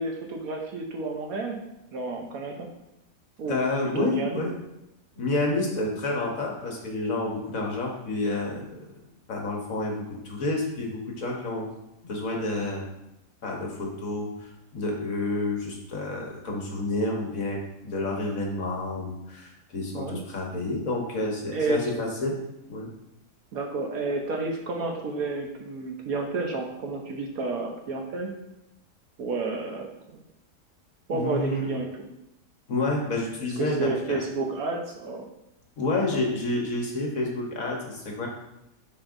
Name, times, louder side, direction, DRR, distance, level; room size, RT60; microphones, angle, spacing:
voice 1, 0.0-1.6 1.9-2.7 3.4-3.6 3.9-4.4 19.9-20.2 21.5-22.0 23.5-28.3 29.2-30.2 31.1-32.1 33.6-35.2 36.1-36.2, right 3 dB, 65° right, 2 dB, 1.2 m, -30 dB
voice 2, 3.5-4.6 5.1-8.8 9.3-11.7 12.0-12.8 13.4-22.4 22.7-22.9 31.1-31.7 32.7-34.2 35.8-38.3, left 2 dB, 55° left, -1 dB, 1.5 m, -29 dB
9.7 x 4.4 x 2.6 m, 0.86 s
omnidirectional pair, 1.8 m